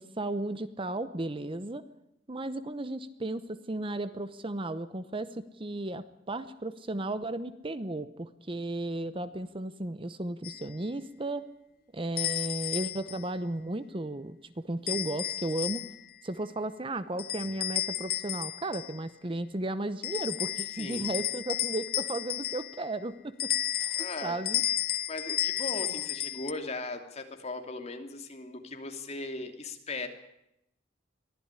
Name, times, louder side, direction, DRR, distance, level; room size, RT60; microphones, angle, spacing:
voice 1, 0.0-1.8 2.3-11.5 11.9-15.8 16.2-23.5 23.8-24.6, right 1 dB, 30° right, 13 dB, 0.9 m, -35 dB
sound 1, 10.4-10.7 12.2-13.2 14.9-16.1 17.2-19.0 20.0-22.9 23.4-26.5, left 12 dB, 55° left, 0.8 m, -33 dB
voice 2, 20.8-21.1 24.0-24.4 25.1-30.1, left 3 dB, 35° left, 5 dB, 2.9 m, -38 dB
23.5 x 15.0 x 9.8 m, 0.82 s
head